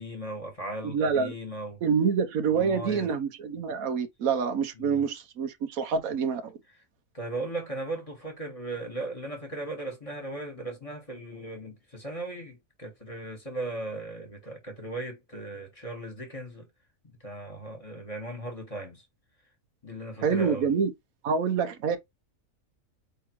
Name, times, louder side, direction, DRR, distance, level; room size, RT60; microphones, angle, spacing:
voice 1, 0.0-1.8 2.5-3.1 4.8-5.0 7.1-16.7 17.2-19.0 19.8-20.7, right 2 dB, 25° left, 1.4 m, -37 dB
voice 2, 0.8-1.3 1.8-6.5 20.2-20.9 21.2-22.0, right 6 dB, 85° right, 1.3 m, -26 dB
4.9 x 3.4 x 3.0 m
omnidirectional pair, 1.4 m